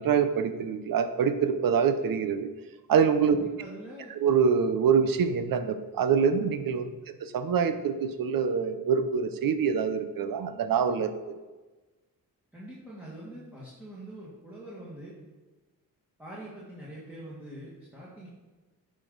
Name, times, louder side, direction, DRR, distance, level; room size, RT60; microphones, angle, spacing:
voice 1, 0.0-2.5 2.9-3.4 4.1-6.9 7.2-11.4, right 6 dB, 65° right, 10 dB, 0.7 m, -25 dB
voice 2, 3.3-4.1 6.9-7.0 12.5-15.1 16.2-18.3, right 1 dB, 5° right, -8 dB, 2.0 m, -44 dB
9.6 x 5.2 x 4.0 m, 1.2 s
wide cardioid pair, 115°, 37 cm